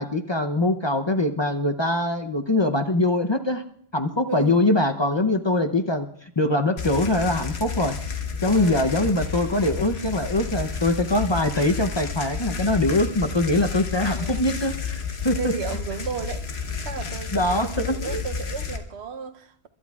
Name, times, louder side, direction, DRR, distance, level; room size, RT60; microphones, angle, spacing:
voice 1, 0.0-3.6 3.9-8.0 8.4-15.4 17.3-18.2, left 2 dB, 30° left, 0.6 m, -23 dB
voice 2, 4.3-4.6 8.5-8.9 14.0-14.4 15.4-19.7, right 6 dB, 85° right, 1.0 m, -34 dB
sound 1, 6.8-18.8, left 5 dB, 75° left, 1.4 m, -31 dB
30.0 x 12.0 x 2.3 m
omnidirectional pair, 1.1 m